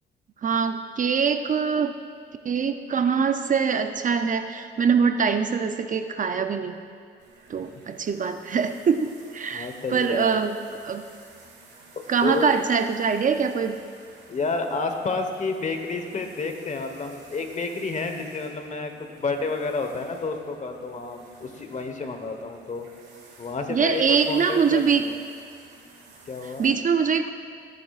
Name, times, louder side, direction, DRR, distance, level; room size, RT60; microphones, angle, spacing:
voice 1, 0.4-1.9 2.4-6.8 7.5-11.0 12.1-13.7 23.7-25.1 26.4-27.3, right 6 dB, 40° right, 8 dB, 0.5 m, -23 dB
sound 1, 7.2-26.7, right 3 dB, 60° right, 2.3 m, -52 dB
voice 2, 9.5-10.2 12.2-12.6 14.3-22.9 23.4-25.0 26.3-26.7, left 3 dB, 40° left, 5 dB, 1.2 m, -30 dB
16.0 x 10.5 x 2.4 m, 2.2 s
cardioid pair, 90°, 20 cm